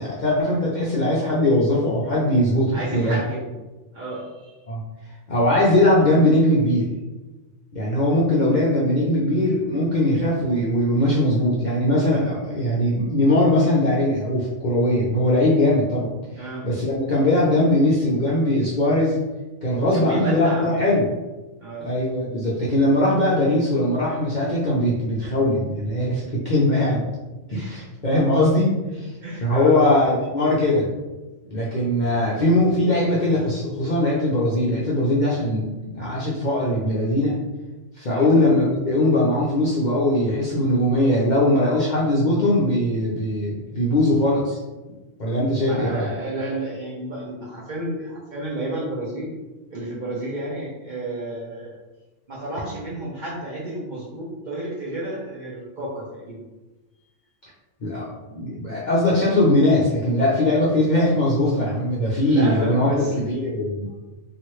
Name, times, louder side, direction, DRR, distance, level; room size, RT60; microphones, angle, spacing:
voice 1, 0.0-3.2 4.7-4.8 5.3-6.9 7.7-16.1 16.6-19.2 19.6-21.1 21.9-27.0 27.5-29.1 29.4-30.9 31.5-37.4 38.0-44.6 45.2-46.1 57.8-63.9, left 1 dB, 55° left, -6 dB, 0.5 m, -20 dB
voice 2, 2.7-3.4 3.9-4.5 16.4-16.7 19.9-20.7 21.6-21.9 27.5-27.9 29.2-29.8 38.1-38.3 45.6-49.3 49.7-51.7 52.3-56.4 62.2-63.3, right 1 dB, 50° right, -5 dB, 0.6 m, -31 dB
2.9 x 2.4 x 3.0 m, 1.1 s
omnidirectional pair, 1.3 m